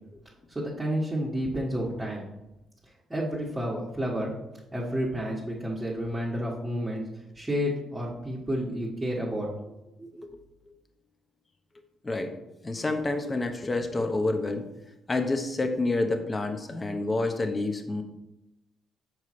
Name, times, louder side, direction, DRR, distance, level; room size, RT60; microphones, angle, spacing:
voice 1, 0.5-2.3 3.1-4.3 4.7-7.0 7.3-9.5, equal, 15° right, -5 dB, 1.5 m, -30 dB
voice 2, 12.6-14.6 15.1-18.0, left 2 dB, 25° left, 6 dB, 0.9 m, -28 dB
6.7 x 4.6 x 4.4 m, 0.94 s
cardioid pair, 90°, 0 cm